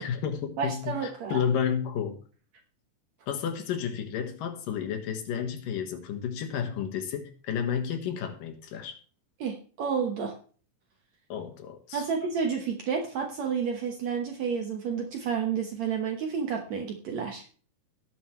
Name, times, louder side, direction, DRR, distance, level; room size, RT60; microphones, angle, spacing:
voice 1, 0.0-2.2 3.3-9.0 11.3-12.0, left 8 dB, 70° left, 5 dB, 3.1 m, -31 dB
voice 2, 0.6-1.4 9.4-10.3 11.9-17.5, right 6 dB, 65° right, 3 dB, 2.0 m, -30 dB
18.5 x 7.4 x 3.1 m, 0.41 s
omnidirectional pair, 4.1 m